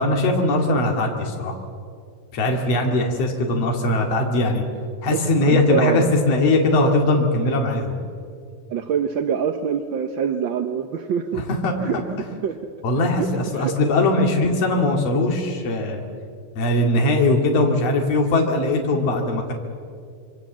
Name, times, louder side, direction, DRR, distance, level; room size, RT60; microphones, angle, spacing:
voice 1, 0.0-1.5 2.3-4.6 5.0-7.9 11.3-11.7 12.8-16.0 16.5-19.5, left 2 dB, 60° left, 2 dB, 3.4 m, -20 dB
voice 2, 5.1-6.1 8.7-11.4 11.8-12.0 12.4-12.6 13.0-13.8, right 7 dB, 65° right, 7 dB, 1.2 m, -25 dB
26.5 x 24.0 x 7.4 m, 2.3 s
omnidirectional pair, 3.3 m